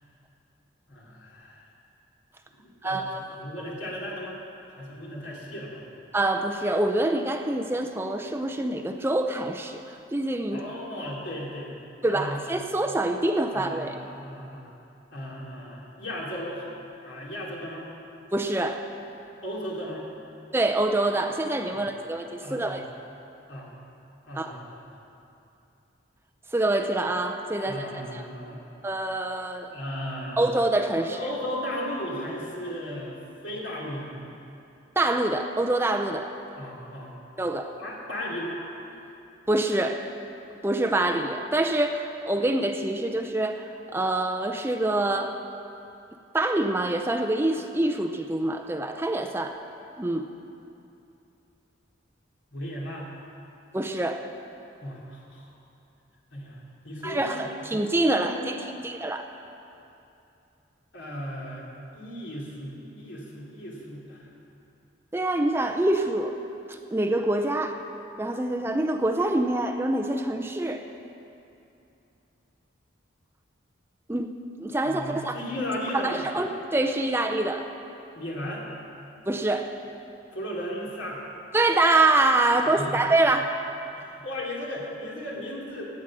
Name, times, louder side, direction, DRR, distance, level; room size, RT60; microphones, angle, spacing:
voice 1, 0.9-1.7 2.5-4.4 4.8-5.8 10.5-11.7 12.1-12.4 13.5-14.7 15.1-16.7 17.0-17.9 19.4-20.0 21.7-21.8 22.4-22.8 23.5-23.7 24.3-24.9 27.6-28.6 29.7-30.5 31.0-34.1 36.6-37.1 37.8-38.6 52.5-53.1 54.8-55.5 56.3-57.5 58.1-58.8 60.9-61.7 61.9-64.3 74.8-76.2 78.1-78.6 80.3-81.2 82.7-83.0 83.9-85.8, equal, 70° left, -4 dB, 2.9 m, -36 dB
voice 2, 2.8-3.4 6.1-9.8 10.1-10.6 12.0-14.0 18.3-18.9 20.5-22.8 24.4-24.6 26.5-28.2 28.8-29.7 30.4-31.2 35.0-36.3 37.4-37.7 39.5-40.0 40.6-45.3 46.3-49.6 50.0-50.3 53.7-54.3 57.0-59.3 65.1-66.4 66.7-67.8 68.2-70.8 74.1-74.3 74.6-75.4 75.9-77.7 79.3-79.7 81.5-83.5, right 2 dB, 10° right, 6 dB, 0.4 m, -25 dB
16.0 x 8.9 x 6.1 m, 2.7 s
head